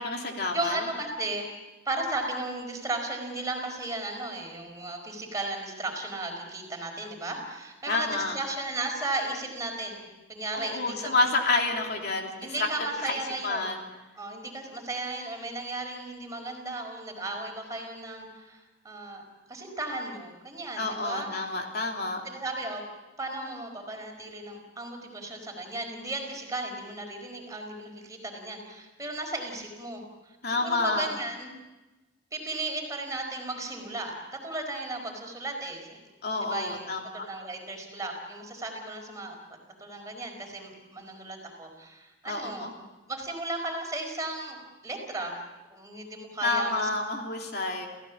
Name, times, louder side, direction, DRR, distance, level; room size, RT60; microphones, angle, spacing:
voice 1, 0.0-0.8 7.9-8.4 10.5-12.7 13.0-13.8 20.8-22.2 30.4-31.1 36.2-37.2 42.3-42.7 46.4-47.9, left 3 dB, 60° left, 1 dB, 3.0 m, -29 dB
voice 2, 0.5-1.4 1.8-11.1 12.4-13.7 14.2-19.2 19.5-21.5 22.2-22.8 23.2-30.4 30.6-31.5 32.3-34.1 34.4-36.0 36.4-39.3 39.8-42.7 43.1-45.4 45.7-46.9, right 2 dB, 20° right, 2 dB, 4.8 m, -35 dB
28.5 x 16.5 x 7.2 m, 1.1 s
head